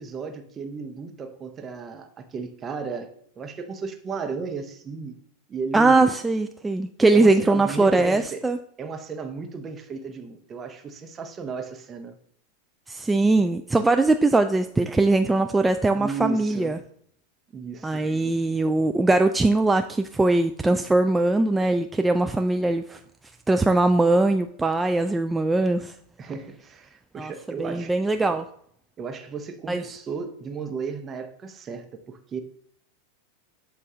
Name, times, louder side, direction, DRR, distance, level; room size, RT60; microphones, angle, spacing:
voice 1, 0.0-5.2 5.5-6.1 7.1-8.4 8.8-12.2 15.9-16.8 17.5-18.1 26.2-27.9 28.3-28.4 29.0-32.4, right 5 dB, 30° right, 0.9 m, -34 dB
voice 2, 5.7-8.6 12.9-16.8 17.8-23.0 23.5-25.9 27.2-27.3 27.6-28.5 29.7-29.8, right 2 dB, 10° right, 0.3 m, -21 dB
7.6 x 2.7 x 4.8 m
hypercardioid pair, 95°, 0 cm